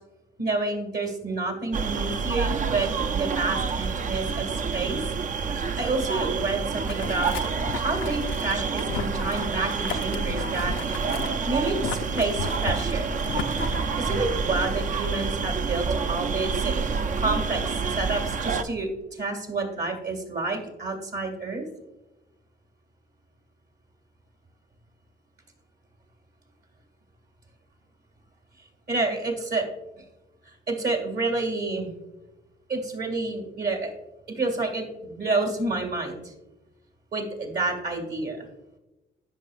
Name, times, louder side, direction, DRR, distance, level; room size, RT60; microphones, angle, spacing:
voice 1, 0.4-5.0 5.6-11.1 11.5-16.7 17.2-21.6 28.9-29.6 30.7-31.9 32.7-33.9 34.3-36.3 37.1-38.5, right 3 dB, 55° right, 2 dB, 2.2 m, -29 dB
sound 1, 1.7-18.6, right 5 dB, 40° right, 0.5 m, -28 dB
Boiling, 6.9-14.2, left 8 dB, 75° left, 0.5 m, -36 dB
14.0 x 5.5 x 2.5 m, 1.0 s
cardioid pair, 90°, 20 cm